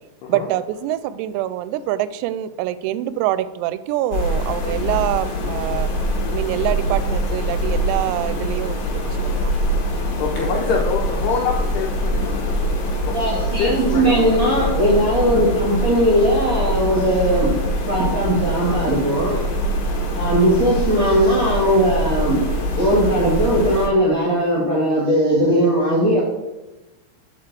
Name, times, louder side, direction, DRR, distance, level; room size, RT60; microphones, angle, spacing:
voice 1, 0.3-5.9 6.3-8.8 9.1-9.5, right 13 dB, 90° right, 15 dB, 3.3 m, -25 dB
sound 1, 4.1-23.9, equal, 65° left, 3.5 m, -23 dB
voice 2, 10.2-14.4 15.8-15.9 20.0-20.2, left 5 dB, 85° left, -1 dB, 2.4 m, -26 dB
voice 3, 13.1-17.5 17.9-19.4 20.1-22.4 22.8-26.2, right 1 dB, 55° right, -5 dB, 1.3 m, -18 dB
8.6 x 4.6 x 7.5 m, 1.1 s
omnidirectional pair, 5.9 m